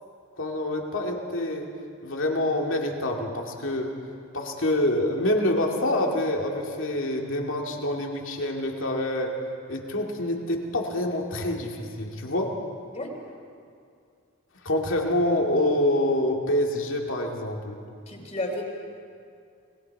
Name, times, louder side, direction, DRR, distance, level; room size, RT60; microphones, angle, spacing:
voice 1, 0.4-1.7 2.0-3.9 4.3-9.3 9.7-12.5 14.6-17.8, left 1 dB, 65° left, 1 dB, 2.5 m, -26 dB
voice 2, 18.1-18.6, left 1 dB, 30° left, 1 dB, 3.2 m, -32 dB
29.0 x 20.5 x 4.8 m, 2.3 s
head